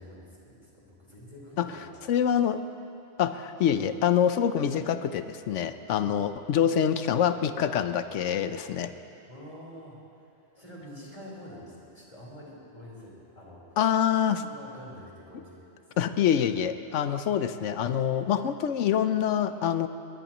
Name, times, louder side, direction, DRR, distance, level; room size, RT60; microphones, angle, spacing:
voice 1, 0.0-2.1 9.3-13.8 14.4-16.0, equal, 30° left, -5 dB, 4.1 m, -47 dB
voice 2, 2.1-2.6 3.2-8.9 13.8-14.4 16.0-19.9, left 9 dB, 80° left, 11 dB, 1.0 m, -25 dB
22.0 x 21.0 x 3.0 m, 2.6 s
omnidirectional pair, 1.2 m